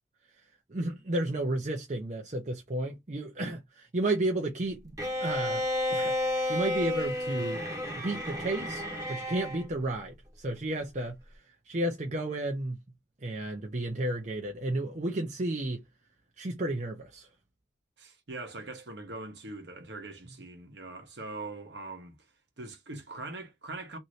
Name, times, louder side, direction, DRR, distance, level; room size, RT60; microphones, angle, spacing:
voice 1, 0.7-5.6 5.9-6.2 6.5-7.6 8.0-8.8 9.1-11.2 11.7-12.8 13.2-15.8 16.4-17.3, right 1 dB, 40° right, 0.6 m, -32 dB
Bowed string instrument, 5.0-9.6, left 1 dB, 15° right, 0.9 m, -31 dB
voice 2, 18.0-22.1 22.6-24.0, right 2 dB, 65° right, 1.0 m, -42 dB
2.7 x 2.6 x 3.0 m
head